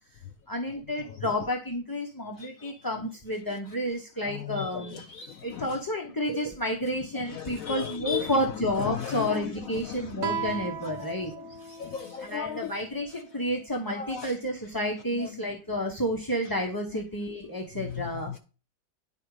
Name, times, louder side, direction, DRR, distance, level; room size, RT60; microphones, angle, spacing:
voice 1, 0.5-5.0 5.4-11.3 12.2-18.3, equal, 20° left, 0.7 m, -30 dB
voice 2, 2.4-2.7 4.3-5.7 7.3-8.3 8.8-10.4 10.8-12.7 13.9-14.3 15.2-15.3 17.8-18.4, left 8 dB, 75° left, 0.7 m, -36 dB
Guitar, 10.2-13.5, right 6 dB, 70° right, 1.4 m, -37 dB
9.8 x 5.0 x 4.8 m
omnidirectional pair, 2.0 m